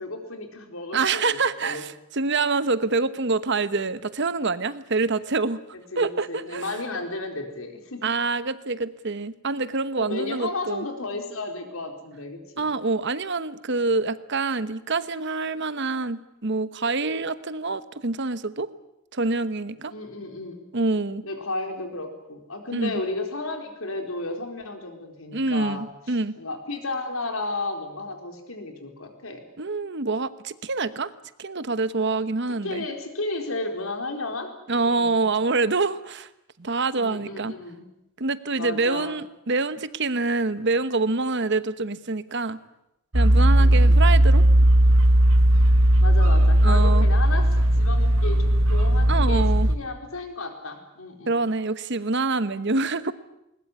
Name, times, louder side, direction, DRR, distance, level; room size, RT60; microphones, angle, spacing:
voice 1, 0.0-1.9 5.7-8.0 10.0-12.7 19.9-20.6 21.2-29.4 32.6-35.2 37.0-37.8 38.5-39.2 43.6-44.1 46.0-51.4, left 2 dB, 75° left, 4 dB, 4.3 m, -33 dB
voice 2, 0.9-5.6 6.0-6.7 8.0-10.9 12.6-18.7 19.1-19.9 20.7-21.2 22.7-23.0 25.3-26.3 29.6-31.1 31.4-32.8 34.7-36.3 36.6-37.5 38.2-42.6 43.1-44.4 46.6-47.1 49.1-49.7 51.3-53.1, right 3 dB, 55° right, 14 dB, 1.1 m, -26 dB
sound 1, 43.1-49.8, right 1 dB, 70° right, 2.1 m, -17 dB
20.5 x 20.0 x 9.7 m, 0.84 s
head